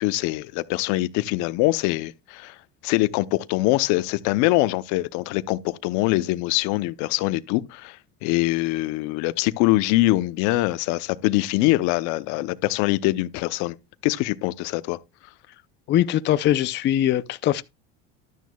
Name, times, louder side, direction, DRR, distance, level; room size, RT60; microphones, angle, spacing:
voice 1, 0.0-2.5 2.8-13.7 14.0-15.0, left 18 dB, 70° left, 0.7 m, -23 dB
voice 2, 15.9-17.6, left 12 dB, 35° left, 0.5 m, -21 dB
12.0 x 9.3 x 2.3 m
supercardioid pair, 125°, 30 cm